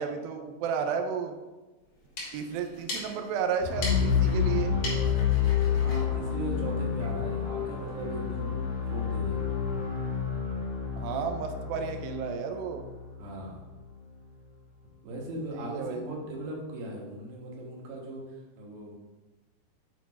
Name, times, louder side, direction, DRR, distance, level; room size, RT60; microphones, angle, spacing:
voice 1, 0.0-1.4 2.3-4.7 11.0-12.9 15.5-16.1, right 6 dB, 90° right, 5 dB, 2.1 m, -32 dB
sound 1, 1.9-7.2, left 2 dB, 50° left, 3.3 m, -41 dB
sound 2, 3.6-13.6, left 7 dB, 75° left, 3.5 m, -29 dB
voice 2, 5.7-8.5 8.8-9.4 13.2-13.6 15.0-19.0, right 1 dB, 65° right, -2 dB, 2.9 m, -39 dB
8.1 x 3.9 x 4.8 m, 1.2 s
omnidirectional pair, 4.9 m